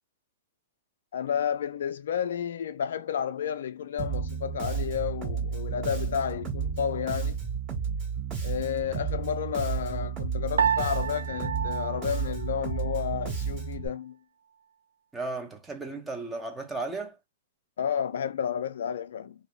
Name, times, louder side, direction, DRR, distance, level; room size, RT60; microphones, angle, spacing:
voice 1, 1.1-7.4 8.4-14.2 17.8-19.3, left 8 dB, 70° left, 0.4 m, -31 dB
Bass guitar, 4.0-13.9, right 6 dB, 30° right, 1.7 m, -32 dB
Piano, 10.6-13.1, right 7 dB, 85° right, 0.3 m, -30 dB
voice 2, 15.1-17.2, right 3 dB, 10° right, 0.6 m, -35 dB
2.8 x 2.1 x 2.3 m
hypercardioid pair, 125°, 0 cm